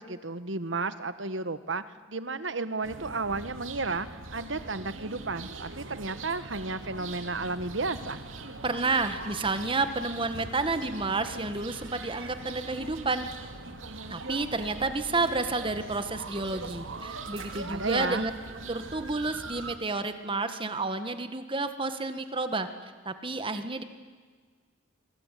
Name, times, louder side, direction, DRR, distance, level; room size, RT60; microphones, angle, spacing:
voice 1, 0.0-8.2 17.7-18.3, right 3 dB, 65° right, 12 dB, 1.5 m, -33 dB
sound 1, 2.8-19.8, right 3 dB, 85° right, 2.6 m, -41 dB
voice 2, 8.6-13.3 14.1-18.3 18.7-22.7 23.1-23.8, right 3 dB, 25° right, 9 dB, 1.7 m, -30 dB
27.0 x 23.5 x 9.3 m, 1.5 s
head